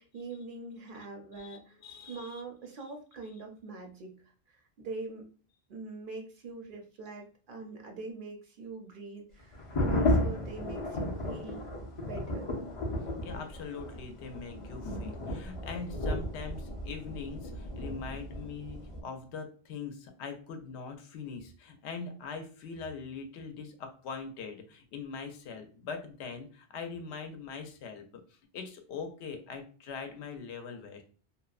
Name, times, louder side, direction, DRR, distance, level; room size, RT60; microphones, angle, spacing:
voice 1, 0.0-5.2 5.7-12.5, right 3 dB, 60° right, 3 dB, 0.6 m, -43 dB
voice 2, 1.3-2.4 13.2-28.1 28.5-31.0, left 5 dB, 80° left, 6 dB, 0.8 m, -42 dB
sound 1, 9.5-19.0, left 1 dB, 40° left, 0.5 m, -34 dB
2.8 x 2.0 x 2.3 m, 0.40 s
omnidirectional pair, 1.1 m